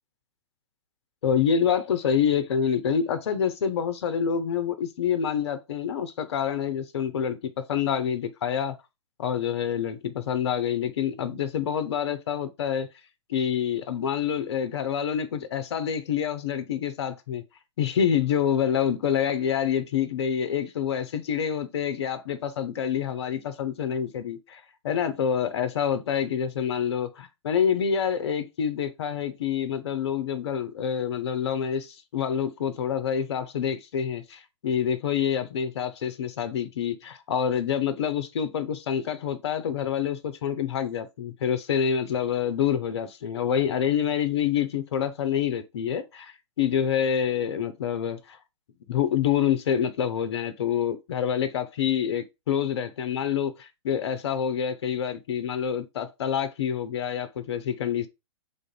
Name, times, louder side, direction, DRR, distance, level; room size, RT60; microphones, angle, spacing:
voice 1, 1.2-8.8 9.2-12.9 13.3-17.4 17.8-48.4 48.9-58.1, left 8 dB, 60° left, 0.5 m, -27 dB
3.4 x 2.6 x 3.9 m
figure-of-eight pair, 110°, 16 cm